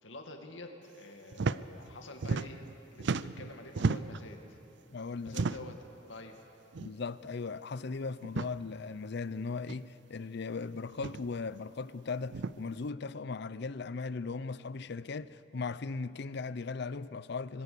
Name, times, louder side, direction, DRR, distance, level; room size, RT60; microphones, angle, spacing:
voice 1, 0.0-2.6 2.9-4.6 5.2-5.7 6.1-6.4, left 2 dB, 80° left, 2.2 m, -47 dB
sound 1, 1.3-1.6 1.9-2.7 3.0-4.3 5.3-5.8 6.7-6.9 7.2-7.3 8.2-8.5 9.7-9.8 10.9-11.2 12.3-12.5, right 4 dB, 70° right, 0.5 m, -33 dB
voice 2, 4.9-5.4 6.8-17.6, left 4 dB, 65° left, 0.6 m, -38 dB
25.5 x 20.0 x 6.9 m
head